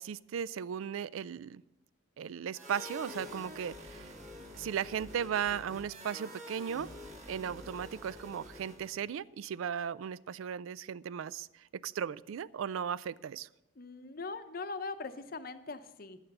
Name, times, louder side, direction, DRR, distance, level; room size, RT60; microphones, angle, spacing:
voice 1, 0.0-1.6 2.2-4.1 4.5-6.9 7.3-13.5, right 8 dB, 75° right, 19 dB, 0.3 m, -36 dB
sound 1, 2.5-9.1, left 1 dB, 35° right, 1.8 m, -48 dB
voice 2, 13.8-16.2, left 3 dB, 45° left, 10 dB, 0.7 m, -41 dB
11.5 x 9.0 x 5.4 m, 0.92 s
head